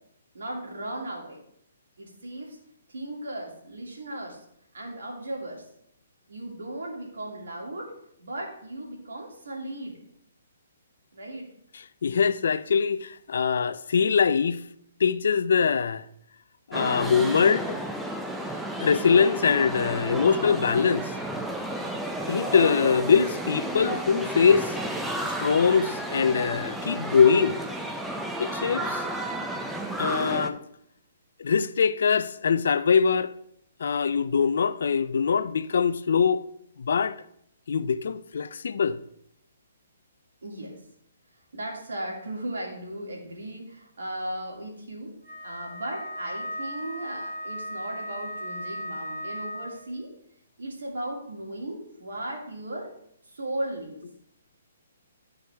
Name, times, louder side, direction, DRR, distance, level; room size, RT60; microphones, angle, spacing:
voice 1, 0.3-1.4 2.0-2.6 2.9-4.4 4.7-5.7 6.3-7.9 8.2-10.0 11.1-11.5 40.4-40.8 41.5-45.2 45.4-50.1 50.6-52.9 53.2-54.0, right 1 dB, 80° right, 2.5 m, -36 dB
voice 2, 12.0-14.6 15.0-16.0 16.7-17.7 18.8-21.1 22.3-24.7 25.4-27.6 28.4-29.0 30.0-30.6 31.4-33.3 33.8-36.5 36.8-37.2 37.7-39.0, left 6 dB, 70° left, 0.4 m, -23 dB
sound 1, 16.7-30.5, right 1 dB, 5° right, 0.6 m, -32 dB
Wind instrument woodwind instrument, 45.2-49.9, equal, 55° right, 1.8 m, -36 dB
11.5 x 4.7 x 3.4 m
hypercardioid pair, 140°, 0 cm